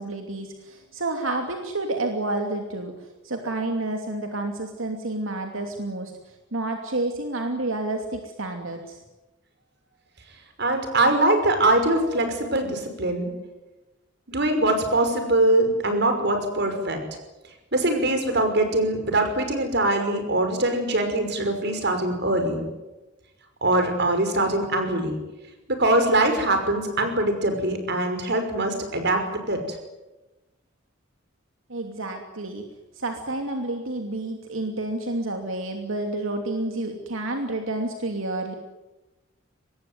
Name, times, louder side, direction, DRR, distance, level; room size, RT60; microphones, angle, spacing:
voice 1, 0.0-6.1 6.5-9.0 31.7-32.7 32.9-38.5, right 2 dB, 85° right, 4 dB, 2.8 m, -29 dB
voice 2, 10.6-13.3 14.3-17.0 17.7-22.6 23.6-25.1 25.7-29.6, right 1 dB, 55° right, 7 dB, 5.7 m, -22 dB
24.5 x 20.5 x 9.4 m, 1.1 s
head